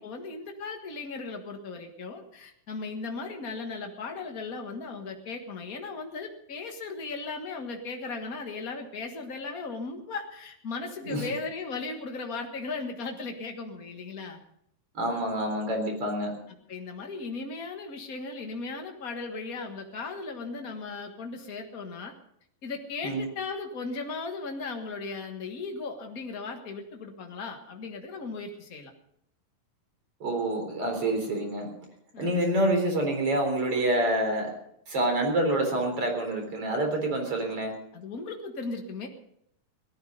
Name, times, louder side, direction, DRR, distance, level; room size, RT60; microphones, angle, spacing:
voice 1, 0.0-14.4 16.7-22.1 22.6-28.9 32.1-32.3 37.9-39.1, left 4 dB, 85° left, 3 dB, 0.7 m, -37 dB
voice 2, 14.9-16.3 23.0-23.2 30.2-31.7 32.2-34.5 34.9-37.7, right 1 dB, 40° right, 3 dB, 4.7 m, -27 dB
18.0 x 14.5 x 5.3 m, 0.73 s
omnidirectional pair, 4.3 m